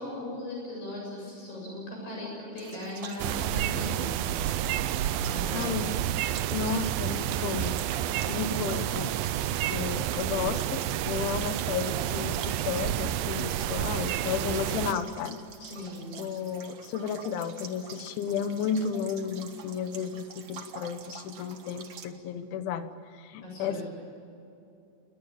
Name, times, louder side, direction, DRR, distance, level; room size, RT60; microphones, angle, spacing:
voice 1, 0.0-4.1 5.2-5.8 15.6-16.1 23.4-23.8, left 2 dB, 60° left, -2 dB, 9.4 m, -38 dB
sound 1, 2.6-22.1, right 7 dB, 65° right, 1.4 m, -47 dB
sound 2, 3.2-14.9, right 12 dB, 85° right, 2.0 m, -30 dB
voice 2, 5.5-5.9 6.5-7.8 8.3-9.1 9.7-15.4 16.2-22.9 23.1-23.8, left 7 dB, 90° left, 10 dB, 3.7 m, -33 dB
28.0 x 22.0 x 8.8 m, 2.8 s
omnidirectional pair, 5.2 m